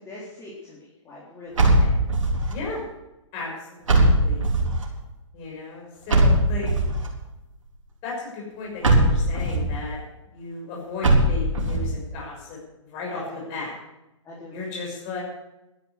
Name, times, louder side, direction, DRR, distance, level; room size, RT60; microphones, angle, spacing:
voice 1, 0.0-1.7 13.1-13.4 14.2-14.6, left 2 dB, 20° left, -6 dB, 3.8 m, -42 dB
sound 1, 1.6-2.5 3.9-4.8 6.1-7.1 8.8-9.7 11.0-11.9, right 1 dB, 80° right, 3.9 m, -19 dB
voice 2, 2.5-2.8 3.3-4.5 5.3-6.8 8.0-10.0 10.3-13.7 14.5-15.2, left 4 dB, 35° left, -3 dB, 6.1 m, -35 dB
12.5 x 10.5 x 8.1 m, 0.96 s
hypercardioid pair, 125°, 16 cm